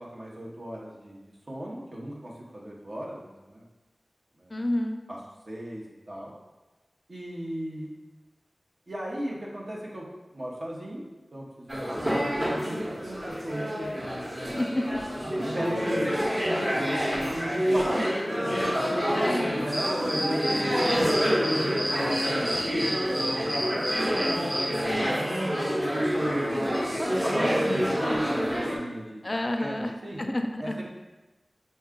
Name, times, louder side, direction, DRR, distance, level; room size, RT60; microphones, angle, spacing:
voice 1, 0.0-3.6 4.4-4.6 5.1-5.2 5.5-6.3 7.1-7.9 8.9-10.1 10.3-14.0 15.4-16.7 17.3-24.2 25.0-25.3 26.0-26.5 27.0-29.3 29.6-30.2 30.6-30.8, right 1 dB, 55° right, -3 dB, 0.8 m, -37 dB
voice 2, 4.5-5.0 14.5-14.8 19.1-19.7 24.9-25.3 29.2-29.9 30.2-30.8, left 1 dB, 35° left, 5 dB, 0.4 m, -30 dB
sound 1, 11.7-28.8, equal, 35° right, 1.0 m, -27 dB
sound 2, 19.7-24.7, equal, 10° right, 0.9 m, -31 dB
5.4 x 2.3 x 3.7 m, 1.1 s
wide cardioid pair, 70°, 0 cm